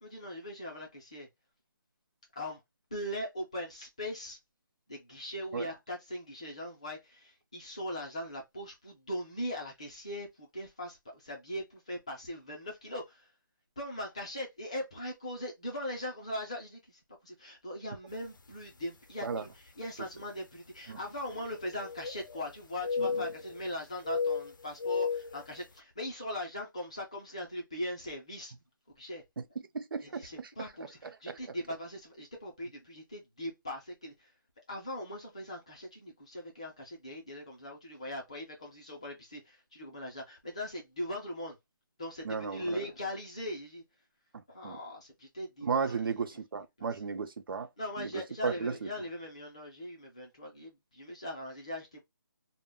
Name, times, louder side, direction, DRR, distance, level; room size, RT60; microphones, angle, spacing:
voice 1, 0.0-1.3 2.4-2.6 2.9-4.4 4.9-13.3 13.8-28.5 29.0-29.2 30.0-34.3 34.7-41.6 42.0-43.8 44.5-46.4 46.8-46.9 47.8-52.0, left 1 dB, 15° left, 0.5 m, -40 dB
sound 1, 18.4-18.5 19.3-19.4 21.3-22.5 22.8-23.7 24.1-25.4, left 5 dB, 65° left, 0.5 m, -34 dB
voice 2, 29.7-30.5 31.3-31.4 42.2-42.8 44.6-44.8 45.6-47.7 48.0-48.1 48.4-48.7, right 5 dB, 80° right, 0.4 m, -34 dB
2.1 x 2.1 x 3.3 m
hypercardioid pair, 180°, 11 cm